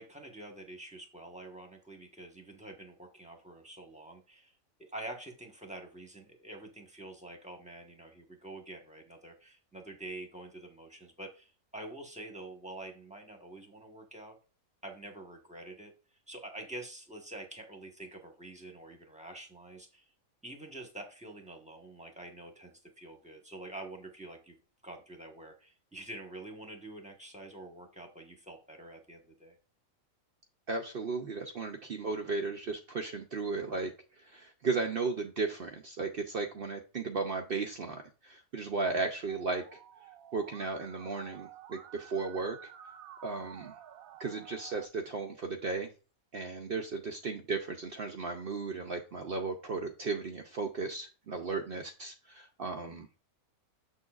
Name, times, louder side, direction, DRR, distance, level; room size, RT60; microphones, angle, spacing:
voice 1, 0.0-4.5 4.8-14.4 14.8-15.9 16.3-20.0 20.4-24.6 24.8-29.6, right 1 dB, 5° right, 2 dB, 1.0 m, -47 dB
voice 2, 30.7-39.8 40.3-42.6 43.2-43.7 44.2-45.9 46.3-53.1, right 4 dB, 55° right, 4 dB, 0.7 m, -35 dB
Musical instrument, 39.3-44.9, right 10 dB, 80° right, 1.1 m, -51 dB
7.0 x 6.6 x 2.4 m, 0.35 s
omnidirectional pair, 1.5 m